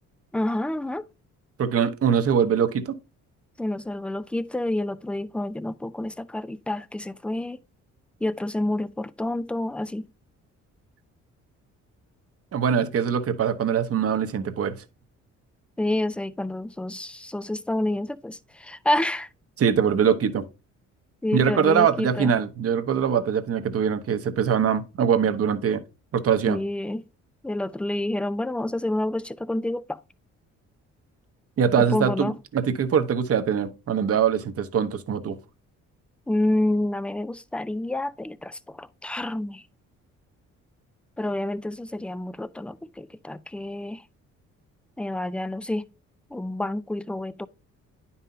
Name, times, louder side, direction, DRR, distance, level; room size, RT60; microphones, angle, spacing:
voice 1, 0.3-1.1 3.6-7.6 8.2-10.1 15.8-19.3 21.2-22.3 26.5-27.0 27.4-30.0 31.8-32.4 36.3-39.6 41.2-44.0 45.0-45.9 46.3-47.5, left 1 dB, 5° left, 0.4 m, -28 dB
voice 2, 1.6-2.9 12.5-14.7 19.6-20.4 21.3-25.8 26.1-26.6 31.6-35.4, right 7 dB, 50° right, 1.0 m, -23 dB
9.7 x 5.6 x 2.7 m
cardioid pair, 90°, 30 cm